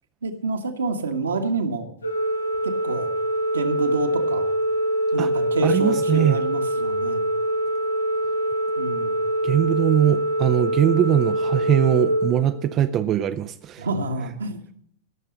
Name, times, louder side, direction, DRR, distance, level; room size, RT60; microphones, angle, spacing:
voice 1, 0.2-1.9 2.6-3.1 3.5-4.5 5.1-7.2 8.8-9.2 13.8-14.7, right 3 dB, 70° right, 1.6 m, -28 dB
Organ, 2.0-13.1, right 1 dB, 75° left, 1.5 m, -24 dB
voice 2, 5.6-6.4 9.4-13.9, right 11 dB, 30° right, 0.5 m, -21 dB
17.0 x 6.7 x 6.5 m
figure-of-eight pair, 95°, 0 cm